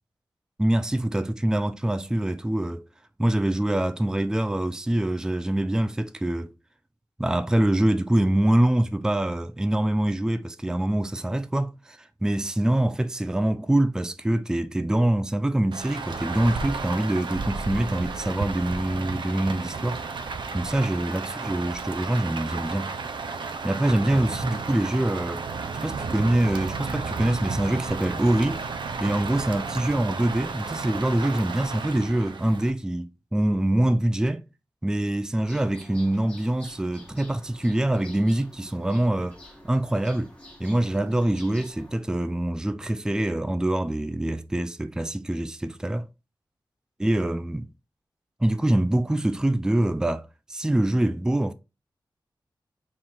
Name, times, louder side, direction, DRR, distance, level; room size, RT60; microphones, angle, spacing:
voice 1, 0.6-2.8 3.2-6.5 7.2-20.0 20.5-23.0 23.6-25.4 25.8-28.6 29.0-34.4 34.8-39.4 39.6-40.3 40.6-46.1 47.0-47.7 48.4-51.5, right 1 dB, 10° right, 0.3 m, -24 dB
Rain, 15.7-32.7, right 4 dB, 70° right, 0.5 m, -33 dB
sound 1, 35.3-42.0, left 1 dB, 15° left, 1.3 m, -48 dB
3.7 x 2.5 x 4.3 m
wide cardioid pair, 70°, 8 cm